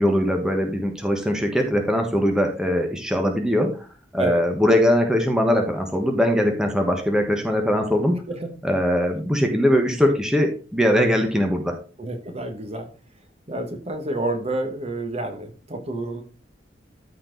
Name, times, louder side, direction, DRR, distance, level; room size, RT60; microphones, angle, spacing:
voice 1, 0.0-3.8 4.1-8.2 8.6-11.8, equal, 5° right, 3 dB, 1.3 m, -21 dB
voice 2, 12.0-12.9 13.5-16.2, right 2 dB, 35° right, 5 dB, 1.5 m, -29 dB
13.0 x 4.5 x 4.0 m, 0.35 s
head